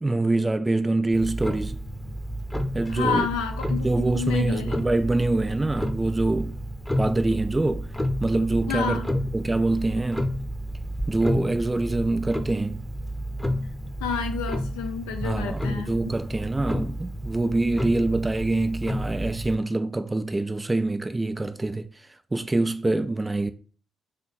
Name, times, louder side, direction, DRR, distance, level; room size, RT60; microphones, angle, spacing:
voice 1, 0.0-1.8 2.7-3.3 3.8-6.6 7.0-7.9 8.2-10.3 11.1-12.8 15.2-23.5, right 2 dB, 20° right, 0.4 m, -25 dB
Clock, 1.1-19.5, equal, 10° left, 0.8 m, -31 dB
voice 2, 2.9-4.8 8.7-9.1 14.0-15.9, left 6 dB, 80° left, 0.6 m, -29 dB
4.2 x 3.1 x 4.1 m
hypercardioid pair, 40°, 0 cm